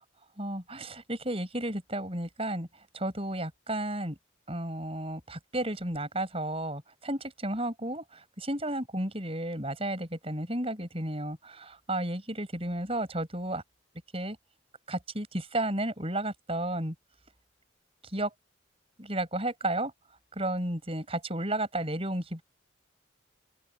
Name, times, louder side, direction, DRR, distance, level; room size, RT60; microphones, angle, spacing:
voice 1, 0.4-2.7 2.9-4.2 4.5-13.6 14.1-14.4 14.9-16.9 18.1-18.3 19.0-19.9 20.4-22.4, right 1 dB, 30° right, 7.2 m, -33 dB
open air
head